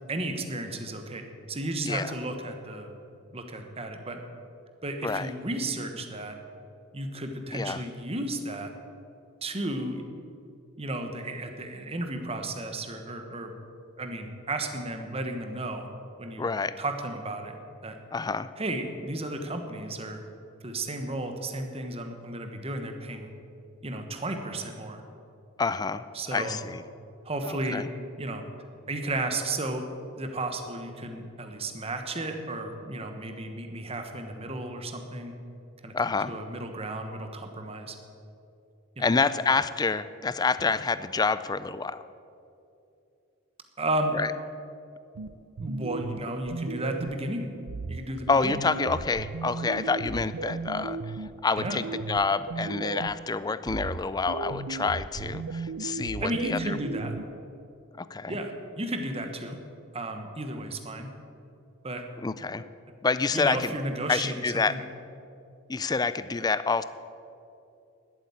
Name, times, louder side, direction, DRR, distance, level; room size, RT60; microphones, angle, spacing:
voice 1, 0.1-2.9 3.3-4.2 4.8-6.4 6.9-8.7 9.4-10.0 10.8-13.5 14.0-15.9 16.2-16.4 16.8-17.5 17.8-18.0 18.6-20.2 20.6-23.3 23.8-25.0 26.1-26.6 27.2-27.8 28.2-28.4 28.9-29.8 30.2-35.3 35.8-35.9 36.3-37.9 39.0-39.1 43.8-44.2 45.6-47.5 47.9-48.6 51.6-51.8 56.2-57.2 58.3-59.6 59.9-61.1 61.8-62.0 63.3-64.4 64.7-64.8, right 1 dB, 25° right, 5 dB, 1.2 m, -33 dB
voice 2, 16.4-16.7 18.1-18.5 25.6-26.0 26.3-26.8 27.4-27.9 35.9-36.3 39.0-42.0 44.1-44.3 48.3-56.8 58.0-58.4 62.2-62.6 63.0-63.7 64.1-64.7 65.7-66.8, left 4 dB, 20° left, 14 dB, 0.3 m, -28 dB
sound 1, 45.2-47.3 47.7-53.3 53.7-57.2, right 4 dB, 85° right, 0.5 m, -36 dB
12.0 x 8.4 x 8.6 m, 2.6 s
head